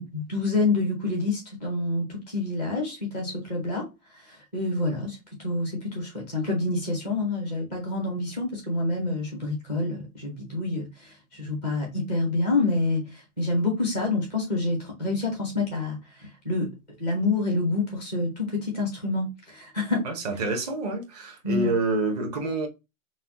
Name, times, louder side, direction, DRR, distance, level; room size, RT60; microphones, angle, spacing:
voice 1, 0.0-3.9 4.1-16.7 17.0-20.0 21.4-21.7, left 2 dB, 10° right, 0.6 m, -27 dB
voice 2, 20.0-22.7, right 2 dB, 30° right, 1.1 m, -27 dB
5.9 x 2.3 x 2.9 m
hypercardioid pair, 175°, 43 cm